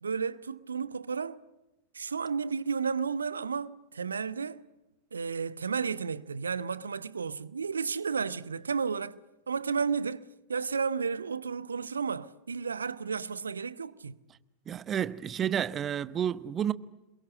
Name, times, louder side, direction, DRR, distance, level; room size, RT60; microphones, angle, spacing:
voice 1, 0.0-1.4 1.9-4.7 5.1-9.2 9.5-10.2 10.5-14.1, right 5 dB, 75° right, 1.0 m, -32 dB
voice 2, 14.7-16.7, right 9 dB, 25° right, 1.1 m, -30 dB
27.5 x 23.0 x 7.7 m
figure-of-eight pair, 90°, 0 cm